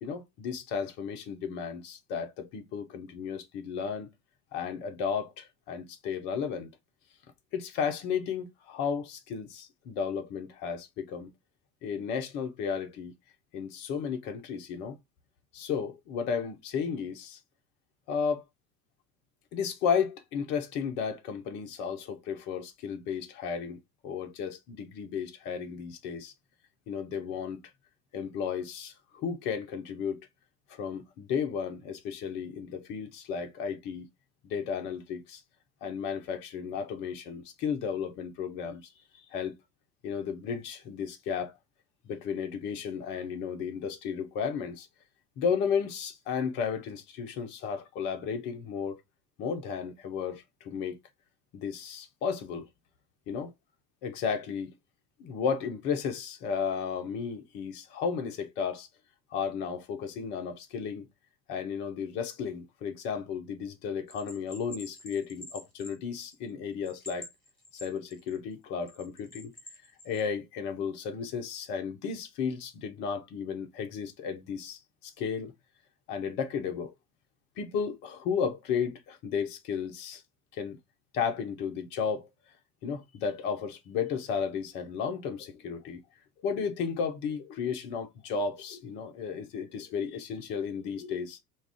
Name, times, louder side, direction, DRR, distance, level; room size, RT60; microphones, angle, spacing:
voice 1, 0.0-4.1 4.5-6.7 7.5-11.3 11.8-13.1 13.5-15.0 15.5-17.4 18.1-18.4 19.5-26.3 26.9-27.6 28.1-30.2 30.7-34.1 34.4-35.4 35.8-38.8 39.2-39.5 40.0-41.5 42.1-44.9 45.4-49.0 49.4-51.0 51.5-52.7 53.3-53.5 54.0-54.7 55.2-58.9 59.3-61.1 61.5-67.3 67.8-69.5 70.0-75.5 76.1-76.9 77.6-80.2 80.5-80.8 81.1-82.3 82.8-86.0 86.4-91.4, left 6 dB, 25° left, 0.4 m, -33 dB
Bell, 64.1-66.5 66.8-68.4 68.9-70.2, left 1 dB, ahead, 0.9 m, -47 dB
2.3 x 2.1 x 3.4 m
figure-of-eight pair, 75°, 47 cm